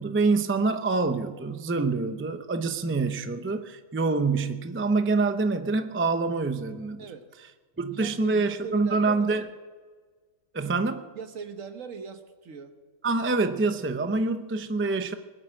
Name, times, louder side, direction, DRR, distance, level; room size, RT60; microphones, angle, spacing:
voice 1, 0.0-7.0 7.8-9.4 10.5-11.1 13.0-15.1, right 3 dB, 15° right, 8 dB, 0.4 m, -26 dB
voice 2, 7.9-9.4 11.1-12.7, right 5 dB, 65° right, 8 dB, 1.5 m, -40 dB
20.5 x 7.6 x 9.1 m, 1.5 s
omnidirectional pair, 1.5 m